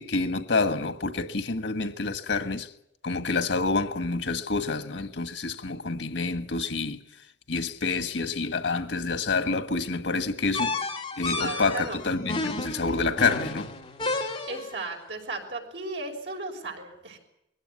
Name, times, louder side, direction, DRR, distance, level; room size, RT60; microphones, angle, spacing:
voice 1, 0.0-2.7 3.0-7.0 7.5-10.8 11.2-13.7, left 3 dB, 90° left, 1.5 m, -28 dB
sound 1, 10.5-14.8, left 3 dB, 25° left, 2.8 m, -32 dB
voice 2, 11.3-12.0 14.4-17.2, right 2 dB, 75° right, 6.0 m, -35 dB
22.0 x 17.0 x 9.6 m
head